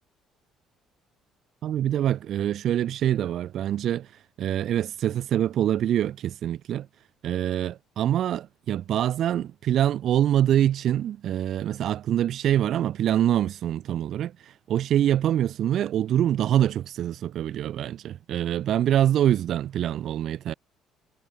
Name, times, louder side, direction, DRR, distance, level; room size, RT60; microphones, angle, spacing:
voice 1, 1.6-6.9 7.2-20.5, right 11 dB, 60° right, 3.0 m, -25 dB
cardioid pair, 120°, 0 cm